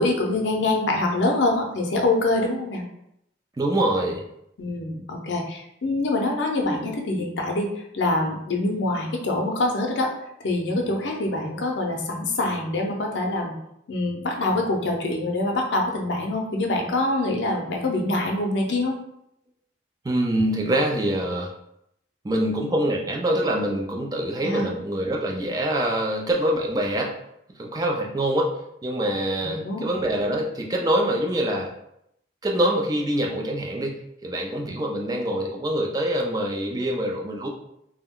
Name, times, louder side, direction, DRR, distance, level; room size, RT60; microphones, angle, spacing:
voice 1, 0.0-2.8 4.6-7.7 7.9-10.1 10.4-13.5 13.9-19.0 24.4-24.7 29.4-29.8, left 2 dB, 85° left, 1 dB, 0.5 m, -25 dB
voice 2, 3.6-4.2 6.5-6.9 20.0-21.5 22.2-27.1 27.6-28.6 28.8-31.7 32.4-37.5, right 1 dB, 20° right, 0 dB, 0.3 m, -25 dB
2.3 x 2.1 x 3.5 m, 0.78 s
head